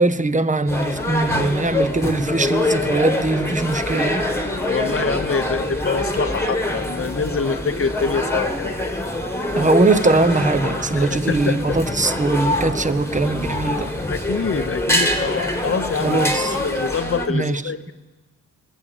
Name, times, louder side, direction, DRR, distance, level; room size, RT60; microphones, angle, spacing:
voice 1, 0.0-4.3 9.5-13.9 16.0-16.5 17.3-17.6, right 2 dB, 20° right, 13 dB, 0.8 m, -21 dB
sound 1, 0.7-17.3, left 1 dB, 5° left, 1.7 m, -24 dB
voice 2, 4.7-8.8 11.0-11.6 14.1-16.2 16.5-17.9, left 5 dB, 40° left, 12 dB, 0.8 m, -25 dB
20.5 x 7.2 x 7.1 m, 1.2 s
cardioid pair, 55°, 35 cm